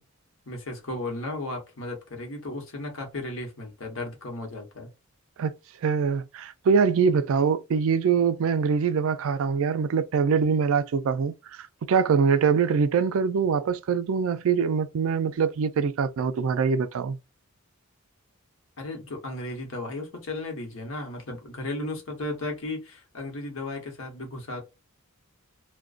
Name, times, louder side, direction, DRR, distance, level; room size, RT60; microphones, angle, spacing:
voice 1, 0.5-4.9 18.8-24.6, left 2 dB, 65° left, 1.0 m, -35 dB
voice 2, 5.8-17.2, right 6 dB, 65° right, 0.3 m, -24 dB
2.5 x 2.2 x 2.3 m
head